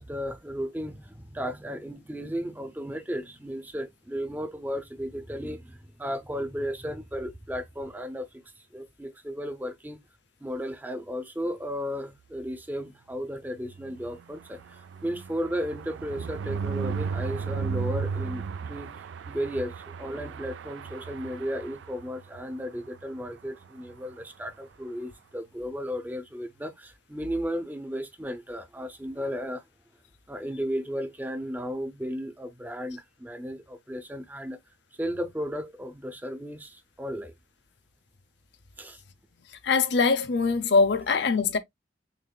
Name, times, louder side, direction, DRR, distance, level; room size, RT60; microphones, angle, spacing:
voice 1, 0.0-10.0 10.4-18.9 19.3-29.6 30.3-34.6 35.0-37.3 38.8-39.0, equal, 10° right, 0.5 m, -34 dB
sound 1, 13.6-22.4 22.8-23.0 23.3-23.4 23.6-23.9, right 5 dB, 90° right, 0.3 m, -35 dB
voice 2, 39.6-41.6, left 4 dB, 75° left, 0.6 m, -22 dB
6.5 x 2.5 x 2.2 m
head